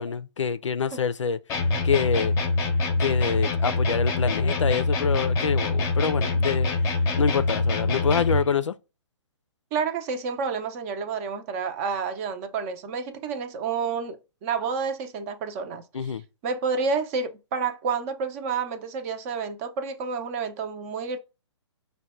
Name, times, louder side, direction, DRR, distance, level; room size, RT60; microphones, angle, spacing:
voice 1, 0.0-1.4 1.8-2.3 3.0-6.7 7.2-8.8 15.9-16.2, left 6 dB, 80° left, 0.4 m, -26 dB
sound 1, 1.5-8.5, left 3 dB, 20° left, 0.7 m, -24 dB
voice 2, 9.7-16.1 16.4-21.2, right 5 dB, 30° right, 0.6 m, -29 dB
5.1 x 2.2 x 4.2 m
figure-of-eight pair, 135°, 15 cm